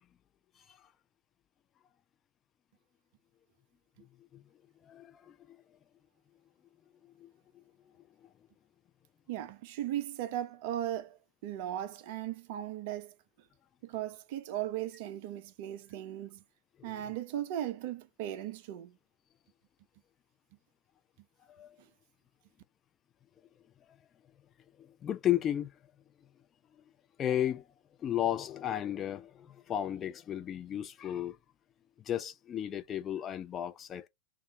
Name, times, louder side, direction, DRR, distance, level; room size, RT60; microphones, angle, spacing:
voice 1, 4.9-5.3 7.2-7.3 16.8-16.9 21.6-21.7 24.8-25.7 27.2-27.6 28.0-31.4 32.1-34.1, left 11 dB, 25° left, 0.4 m, -33 dB
voice 2, 9.3-13.2 13.8-16.4 16.8-19.0 21.8-21.9, right 12 dB, 50° right, 0.4 m, -37 dB
2.3 x 2.1 x 3.9 m
figure-of-eight pair, 90°, 0 cm